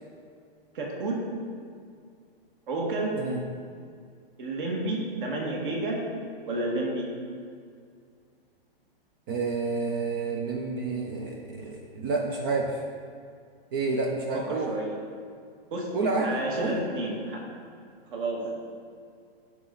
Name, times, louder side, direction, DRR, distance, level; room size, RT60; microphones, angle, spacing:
voice 1, 0.7-1.2 2.7-3.2 4.4-6.0 6.5-7.1 14.3-15.0 15.7-15.9 16.2-17.4 18.1-18.5, right 2 dB, 55° right, -1 dB, 1.8 m, -30 dB
voice 2, 9.3-12.8 13.7-14.8 15.9-16.9, right 3 dB, 25° right, 2 dB, 0.4 m, -29 dB
10.5 x 4.3 x 3.9 m, 2.3 s
hypercardioid pair, 145°, 30 cm